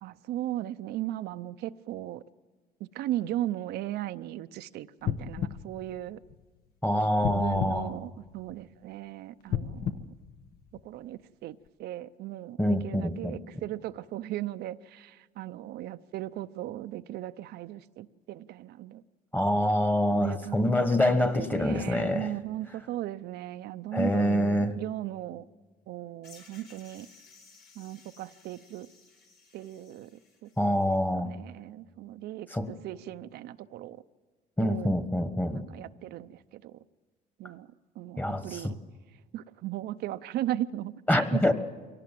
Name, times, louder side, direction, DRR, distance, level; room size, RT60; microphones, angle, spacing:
voice 1, 0.0-2.2 2.8-6.2 7.2-10.0 10.8-19.0 20.1-25.4 25.9-27.1 27.8-28.9 29.5-30.1 30.4-31.0 31.2-34.0 34.6-34.9 35.5-36.8 37.4-37.7 38.0-38.8 39.3-41.5, right 13 dB, 75° right, 10 dB, 0.6 m, -37 dB
sound 1, 5.0-6.7 7.2-8.8 9.4-11.1 11.7-11.8, left 10 dB, 60° left, 1.0 m, -35 dB
voice 2, 6.8-7.9 12.6-13.4 19.3-22.3 23.9-24.7 30.6-31.3 32.5-32.7 34.6-35.6 38.2-38.7 41.1-41.5, left 1 dB, 10° left, 10 dB, 1.4 m, -26 dB
sound 2, 26.2-31.0, left 4 dB, 75° left, 5.3 m, -57 dB
23.5 x 17.5 x 7.6 m, 1.4 s
cardioid pair, 110°, 17 cm